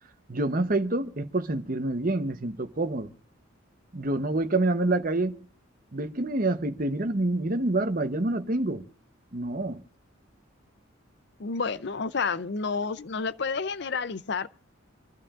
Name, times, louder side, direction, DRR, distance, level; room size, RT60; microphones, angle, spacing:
voice 1, 0.3-3.1 3.9-5.4 5.9-8.9 9.3-9.8, right 2 dB, 45° right, 1.0 m, -27 dB
voice 2, 11.4-14.5, left 4 dB, 55° left, 0.6 m, -30 dB
27.0 x 12.0 x 2.5 m
head